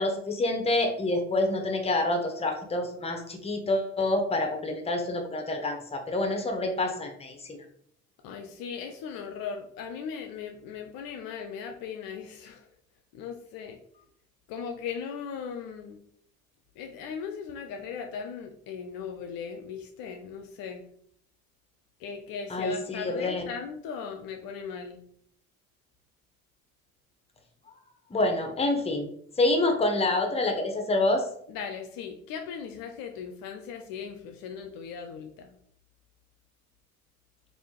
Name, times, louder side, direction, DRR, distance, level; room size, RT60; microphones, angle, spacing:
voice 1, 0.0-7.6 22.5-23.4 28.1-29.1 29.4-31.2, left 2 dB, 15° left, 4 dB, 0.7 m, -27 dB
voice 2, 8.2-12.7 13.1-13.8 14.5-16.0 16.8-20.9 22.0-25.0 31.5-35.6, left 6 dB, 55° left, 5 dB, 0.5 m, -38 dB
3.3 x 2.6 x 3.0 m, 0.66 s
hypercardioid pair, 55°, 42 cm